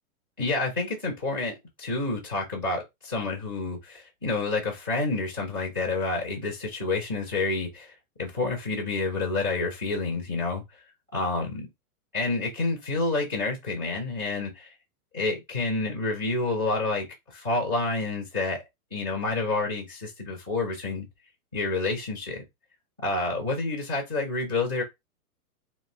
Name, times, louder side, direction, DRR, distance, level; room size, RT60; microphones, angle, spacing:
voice 1, 0.4-10.6 11.1-11.7 12.1-14.7 15.1-18.6 18.9-21.1 21.5-22.4 23.0-24.8, left 3 dB, 15° right, 0.4 m, -29 dB
3.2 x 2.0 x 3.5 m
supercardioid pair, 175°, 46 cm